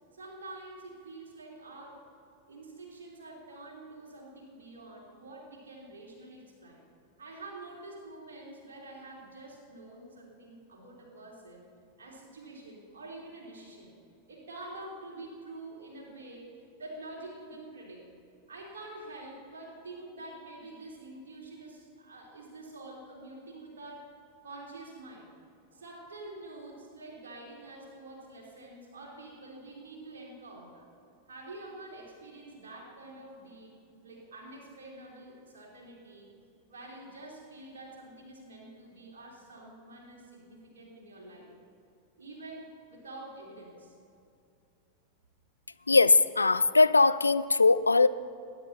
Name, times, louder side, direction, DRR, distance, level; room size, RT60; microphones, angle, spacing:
voice 1, 0.1-2.0 2.5-6.8 7.2-11.7 12.0-13.9 14.3-18.1 18.5-24.1 24.4-25.3 25.7-30.9 31.3-33.8 34.0-36.3 36.7-41.5 42.2-43.9, right 2 dB, 65° right, -2 dB, 3.2 m, -47 dB
voice 2, 45.9-48.1, left 3 dB, 80° left, 15 dB, 0.3 m, -21 dB
20.0 x 10.5 x 4.1 m, 2.6 s
figure-of-eight pair, 90°, 0 cm